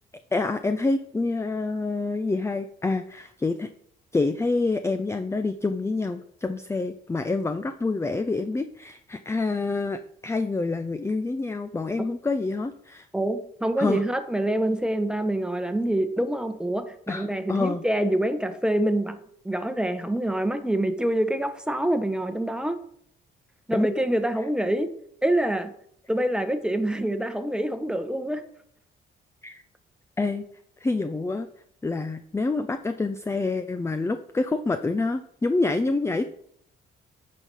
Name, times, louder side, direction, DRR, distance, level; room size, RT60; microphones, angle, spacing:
voice 1, 0.3-3.7 4.1-13.1 13.8-14.0 17.1-17.8 23.7-23.9 29.4-29.6 30.2-30.4 30.8-31.5 31.8-36.3, left 3 dB, 15° left, 9 dB, 0.5 m, -27 dB
voice 2, 13.1-19.2 19.4-22.8 23.7-24.9 25.2-25.7 26.1-28.4, right 1 dB, 5° right, 9 dB, 1.0 m, -26 dB
9.1 x 4.8 x 5.4 m, 0.66 s
cardioid pair, 90°, 20 cm